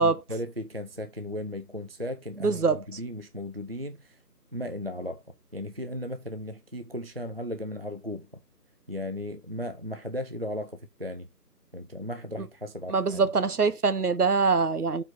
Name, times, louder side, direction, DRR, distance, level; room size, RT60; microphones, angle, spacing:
voice 1, 0.0-4.2 4.5-5.2 5.5-8.4 8.9-11.3 11.7-13.3, left 1 dB, 40° right, 0.5 m, -36 dB
voice 2, 2.4-2.8 12.9-15.0, right 4 dB, 65° right, 1.0 m, -23 dB
6.9 x 4.6 x 5.6 m
figure-of-eight pair, 165°, 48 cm